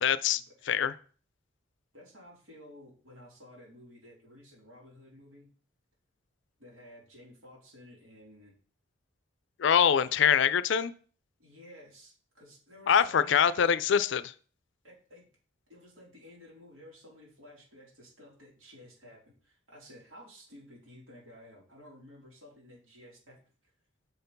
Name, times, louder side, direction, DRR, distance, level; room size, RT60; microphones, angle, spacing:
voice 1, 0.0-0.9 9.6-10.9 12.9-14.3, left 8 dB, 65° left, 15 dB, 0.4 m, -24 dB
voice 2, 1.9-5.5 6.6-8.5 11.4-13.9 14.8-15.3 15.7-23.4, left 1 dB, 90° right, -4 dB, 3.6 m, -53 dB
6.3 x 4.5 x 5.3 m, 0.42 s
head